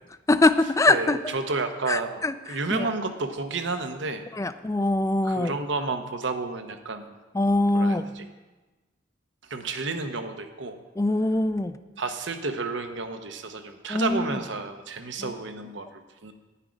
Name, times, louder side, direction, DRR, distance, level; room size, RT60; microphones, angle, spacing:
voice 1, 0.3-1.3 1.9-2.9 4.3-5.5 7.3-8.1 11.0-11.8 13.9-14.4 15.2-15.3, left 2 dB, 15° left, 12 dB, 0.4 m, -23 dB
voice 2, 0.9-2.2 2.5-4.2 5.2-7.2 7.7-8.3 9.5-10.8 12.0-16.3, right 3 dB, 65° right, 7 dB, 0.9 m, -31 dB
9.9 x 9.9 x 5.1 m, 1.2 s
head